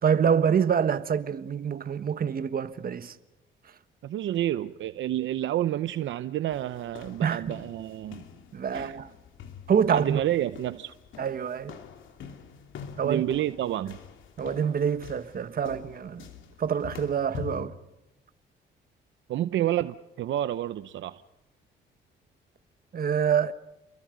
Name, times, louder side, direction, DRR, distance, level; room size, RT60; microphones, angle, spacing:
voice 1, 0.0-3.1 7.2-7.6 8.5-9.1 9.7-10.2 11.2-11.8 13.0-13.2 14.4-16.2 16.6-17.7 22.9-23.5, right 7 dB, 50° right, 1.5 m, -26 dB
voice 2, 4.0-8.2 8.7-9.0 9.9-10.9 13.0-14.0 19.3-21.2, right 12 dB, 70° right, 0.8 m, -29 dB
sound 1, 6.5-17.7, left 7 dB, 75° left, 3.0 m, -45 dB
29.5 x 23.0 x 5.2 m
cardioid pair, 90°, 20 cm